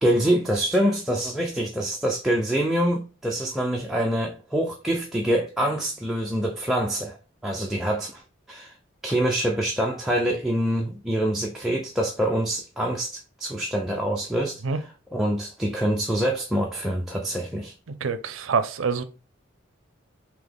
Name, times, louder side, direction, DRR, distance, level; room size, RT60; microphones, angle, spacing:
voice 1, 0.0-7.2 7.4-8.2 8.5-8.7 9.0-14.6 15.1-17.7, right 1 dB, ahead, 0.4 m, -25 dB
voice 2, 18.0-19.0, right 5 dB, 65° right, 0.5 m, -25 dB
3.9 x 2.9 x 3.4 m
head